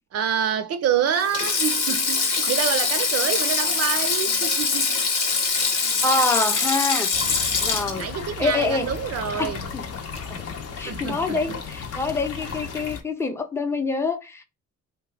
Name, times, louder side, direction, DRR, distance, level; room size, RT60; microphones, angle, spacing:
voice 1, 0.1-5.0 8.0-9.7 10.8-11.6 12.4-12.5, right 8 dB, 55° right, 0.4 m, -27 dB
Sink (filling or washing), 1.2-9.7 9.9-10.2 11.3-11.6, left 4 dB, 75° left, 1.0 m, -24 dB
voice 2, 6.0-7.1 7.6-8.1 8.4-8.9 9.4-9.8 10.2-10.4 10.8-14.4, left 3 dB, 10° left, 0.6 m, -26 dB
sound 1, 7.1-13.0, left 6 dB, 55° left, 0.7 m, -35 dB
2.8 x 2.2 x 3.2 m
cardioid pair, 90°, 30 cm